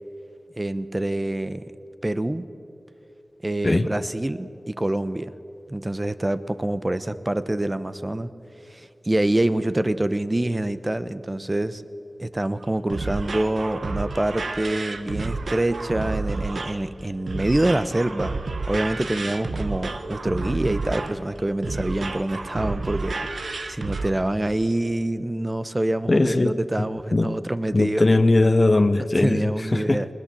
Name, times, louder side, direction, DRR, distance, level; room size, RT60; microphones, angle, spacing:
voice 1, 0.6-1.7 2.0-2.5 3.4-5.3 5.7-8.3 8.7-11.8 12.2-18.3 18.7-23.2 23.7-28.1 29.2-30.1, right 1 dB, 25° right, 13 dB, 0.9 m, -26 dB
sound 1, 12.6-24.1, right 3 dB, 85° right, 1.2 m, -30 dB
voice 2, 26.1-27.3 27.7-30.0, left 2 dB, 40° left, 10 dB, 0.8 m, -20 dB
20.5 x 20.0 x 7.7 m, 2.8 s
wide cardioid pair, 70°, 0 cm